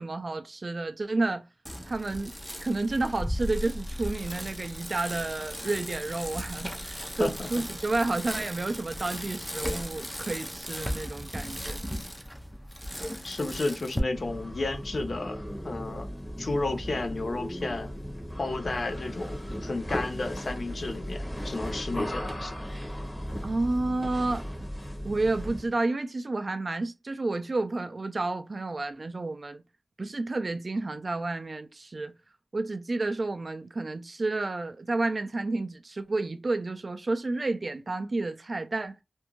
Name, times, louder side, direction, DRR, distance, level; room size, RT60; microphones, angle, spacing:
voice 1, 0.0-1.4 1.9-2.3 2.6-11.8 23.4-24.5 25.0-29.6 30.0-32.1 32.5-39.0, right 2 dB, 55° right, 0.4 m, -30 dB
Bicycle, 1.7-14.0, equal, ahead, 0.5 m, -36 dB
voice 2, 7.2-7.5 13.2-16.1 16.4-17.9 18.4-22.6, left 2 dB, 70° left, 0.6 m, -32 dB
sound 1, 14.0-25.8, equal, 20° left, 0.9 m, -36 dB
2.6 x 2.3 x 2.9 m
wide cardioid pair, 85°, 0 cm